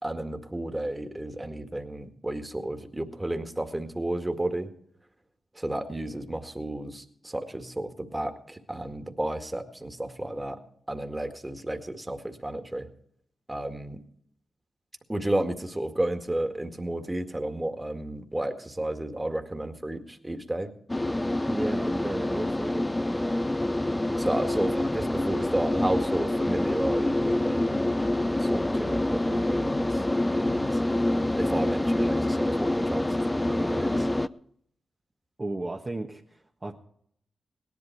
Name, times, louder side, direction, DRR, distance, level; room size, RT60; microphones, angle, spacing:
voice 1, 0.0-4.7 5.6-10.6 10.9-12.9 13.5-14.0 15.1-20.7 24.2-27.9 28.4-30.0 30.3-30.8 31.4-34.1, right 1 dB, 15° right, 6 dB, 2.0 m, -32 dB
sound 1, 20.9-34.3, left 1 dB, 20° left, 0.6 m, -26 dB
voice 2, 21.5-22.9 23.2-23.4 35.4-36.8, right 2 dB, 35° right, 0 dB, 1.3 m, -34 dB
17.5 x 11.0 x 4.7 m, 0.67 s
supercardioid pair, 45°, 0 cm